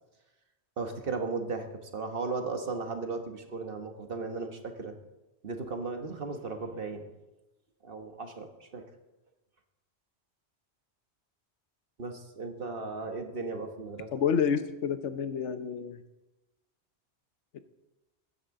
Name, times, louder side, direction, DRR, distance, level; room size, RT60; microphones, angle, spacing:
voice 1, 0.8-4.9 5.4-7.1 7.8-8.8 12.0-14.1, right 3 dB, 55° right, 5 dB, 1.4 m, -36 dB
voice 2, 14.1-16.0 17.5-17.6, left 7 dB, 85° left, 10 dB, 1.1 m, -29 dB
21.0 x 9.9 x 3.7 m, 1.0 s
omnidirectional pair, 1.2 m